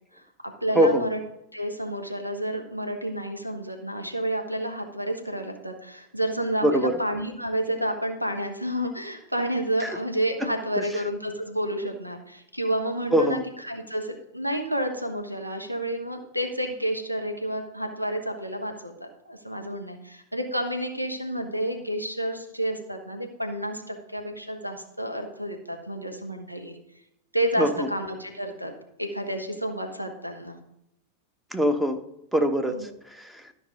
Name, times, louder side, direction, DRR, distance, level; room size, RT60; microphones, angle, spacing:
voice 1, 0.1-1.2 1.5-26.8 27.3-30.6 32.7-32.9, right 1 dB, 90° right, 4 dB, 1.1 m, -30 dB
voice 2, 6.6-7.0 9.8-10.0 13.1-13.4 27.6-27.9 31.5-32.0 32.3-32.8 33.1-33.4, equal, 5° right, 7 dB, 1.0 m, -22 dB
13.0 x 5.4 x 5.1 m, 0.81 s
figure-of-eight pair, 90°, 0 cm